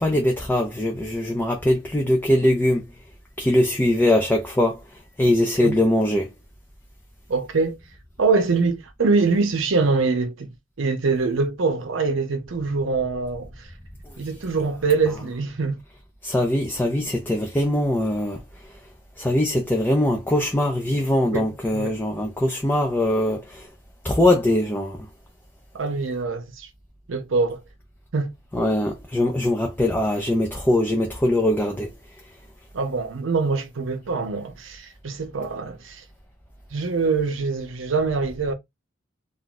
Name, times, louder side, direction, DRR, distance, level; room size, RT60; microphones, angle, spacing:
voice 1, 0.0-2.8 3.4-4.7 5.2-6.3 16.2-18.4 19.2-23.4 24.0-24.9 28.5-31.9, left 1 dB, 10° left, 0.4 m, -21 dB
voice 2, 7.3-7.8 8.2-10.5 10.8-13.7 14.2-15.8 21.3-22.0 25.7-26.7 27.1-27.6 28.1-28.3 32.7-36.0 36.7-38.5, right 4 dB, 75° right, 0.6 m, -24 dB
2.5 x 2.3 x 3.8 m
head